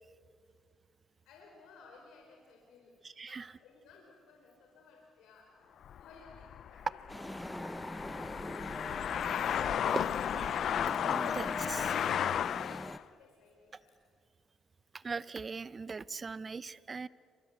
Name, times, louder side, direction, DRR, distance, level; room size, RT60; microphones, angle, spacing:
voice 1, 1.2-5.6 5.9-9.2 11.9-13.9, left 4 dB, 90° left, 0 dB, 4.4 m, -59 dB
sound 1, 5.8-13.0, left 9 dB, 65° left, 0.6 m, -34 dB
sound 2, 7.1-13.0, left 1 dB, 5° left, 0.7 m, -42 dB
voice 2, 10.3-10.7 11.0-11.9 15.0-17.1, right 4 dB, 35° right, 18 dB, 0.8 m, -40 dB
29.0 x 25.5 x 8.1 m, 2.1 s
cardioid pair, 90°, 0 cm